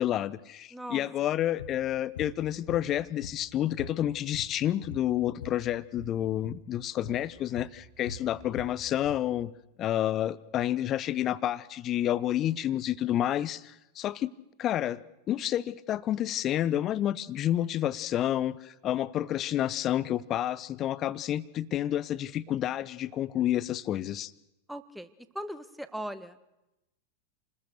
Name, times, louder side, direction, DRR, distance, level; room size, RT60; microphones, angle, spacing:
voice 1, 0.0-9.5 9.8-14.3 14.6-15.0 15.3-24.3, left 12 dB, 30° left, 18 dB, 0.9 m, -29 dB
voice 2, 0.7-1.0 24.7-25.1 25.3-26.4, equal, ahead, 11 dB, 1.5 m, -38 dB
sound 1, 1.6-1.8 2.2-2.4 2.7-3.5 3.8-5.6 5.9-6.2 6.4-6.6 7.1-7.3 7.6-9.3, left 5 dB, 60° left, 1.7 m, -42 dB
29.0 x 20.0 x 6.7 m, 0.93 s
figure-of-eight pair, 90°, 0 cm